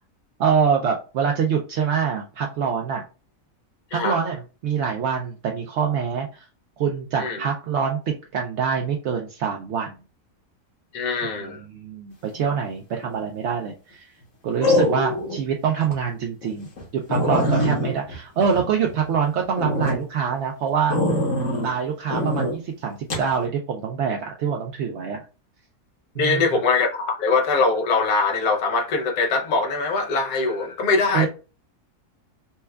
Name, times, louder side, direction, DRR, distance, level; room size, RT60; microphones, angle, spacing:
voice 1, 0.4-3.0 3.9-6.5 6.8-10.0 11.3-14.1 14.4-16.7 16.9-21.0 21.6-25.2 26.2-26.5 31.1-31.3, right 6 dB, 70° right, 0.7 m, -25 dB
voice 2, 10.9-11.6 26.2-31.3, left 4 dB, 85° left, 1.3 m, -22 dB
sound 1, 13.0-13.4 14.6-15.4 15.8-15.9 16.4-16.5 16.8-16.9 17.1-19.1 19.6-20.0 20.9-21.7 22.1-22.5 23.1-23.3, equal, 60° left, 1.4 m, -23 dB
4.3 x 2.2 x 2.3 m
omnidirectional pair, 1.6 m